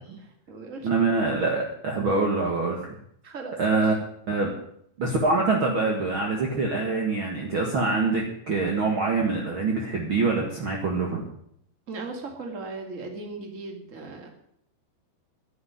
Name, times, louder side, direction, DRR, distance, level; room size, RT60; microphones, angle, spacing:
voice 1, 0.2-0.9 3.2-3.9 11.9-14.3, right 3 dB, 25° right, 4 dB, 1.8 m, -38 dB
voice 2, 0.8-2.8 3.6-3.9 4.3-4.5 5.0-11.2, right 3 dB, 55° right, 0 dB, 1.4 m, -25 dB
11.5 x 9.6 x 9.6 m, 0.71 s
omnidirectional pair, 5.3 m